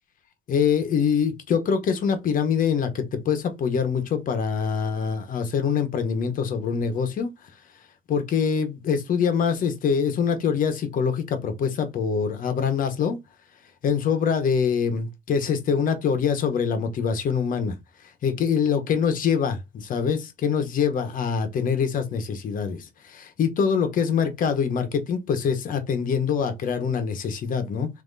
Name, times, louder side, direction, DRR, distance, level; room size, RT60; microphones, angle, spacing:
voice 1, 0.5-7.3 8.1-13.2 13.8-17.8 18.2-27.9, left 6 dB, 55° left, 1.2 m, -24 dB
3.5 x 2.9 x 4.0 m
cardioid pair, 110°, 17 cm